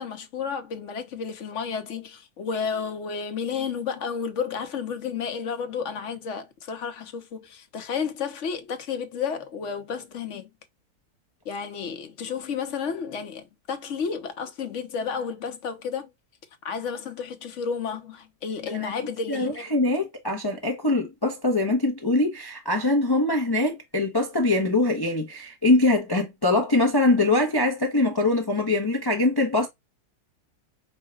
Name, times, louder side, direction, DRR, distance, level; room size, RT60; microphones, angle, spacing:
voice 1, 0.0-10.5 11.4-16.1 16.6-19.7, left 6 dB, 55° left, 1.0 m, -32 dB
voice 2, 18.7-29.7, left 2 dB, 25° left, 0.5 m, -23 dB
5.4 x 2.2 x 3.2 m
omnidirectional pair, 1.7 m